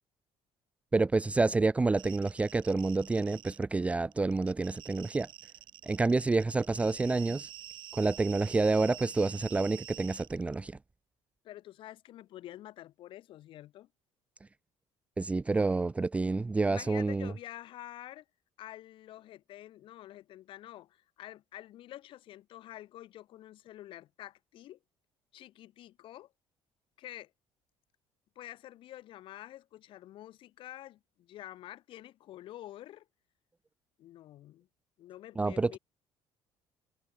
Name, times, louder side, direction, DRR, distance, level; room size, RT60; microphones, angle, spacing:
voice 1, 0.9-5.3 5.9-7.5 7.9-10.7 15.2-17.3 35.4-35.8, right 3 dB, 15° right, 0.7 m, -28 dB
sound 1, 2.0-3.6 3.9-10.5, right 12 dB, 55° right, 5.3 m, -48 dB
voice 2, 11.4-13.9 16.6-18.2 18.6-24.8 25.3-26.3 27.0-27.3 28.4-33.0 34.0-34.7 35.0-35.8, left 14 dB, 60° left, 7.6 m, -48 dB
cardioid pair, 155°, 10 cm